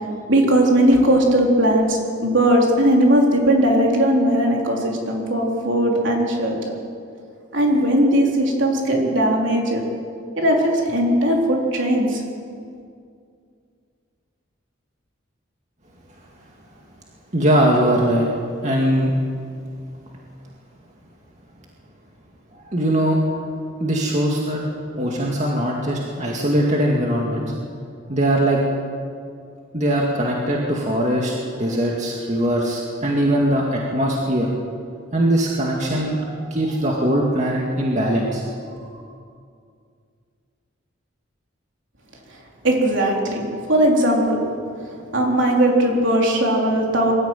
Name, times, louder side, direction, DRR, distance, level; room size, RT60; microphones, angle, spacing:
voice 1, 0.3-6.7 7.5-9.9 10.4-12.2 42.6-43.4 43.7-44.4 45.1-47.1, right 1 dB, 65° right, -1 dB, 3.9 m, -18 dB
voice 2, 17.3-18.3 18.6-19.1 22.6-23.4 23.8-24.6 25.0-27.5 28.1-28.6 29.7-34.5 35.1-38.4, right 1 dB, 35° right, -2 dB, 2.1 m, -21 dB
23.0 x 13.5 x 9.2 m, 2.3 s
head